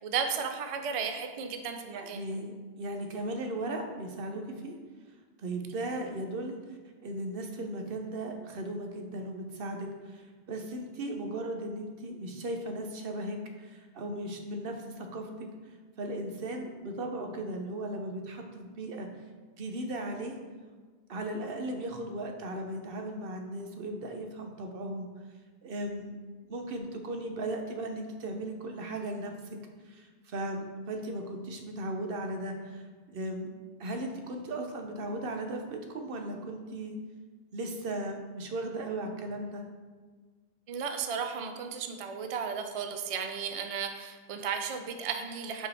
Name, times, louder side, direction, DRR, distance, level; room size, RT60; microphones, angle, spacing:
voice 1, 0.0-2.2 40.7-45.7, right 6 dB, 45° right, 5 dB, 0.5 m, -34 dB
voice 2, 1.9-4.7 5.4-15.5 16.0-19.1 19.6-20.4 21.1-25.1 25.6-26.2 26.5-29.3 29.8-32.8 33.1-33.5 33.8-36.9 37.5-39.6, right 1 dB, 65° right, 4 dB, 1.0 m, -37 dB
5.3 x 4.9 x 4.1 m, 1.4 s
omnidirectional pair, 1.0 m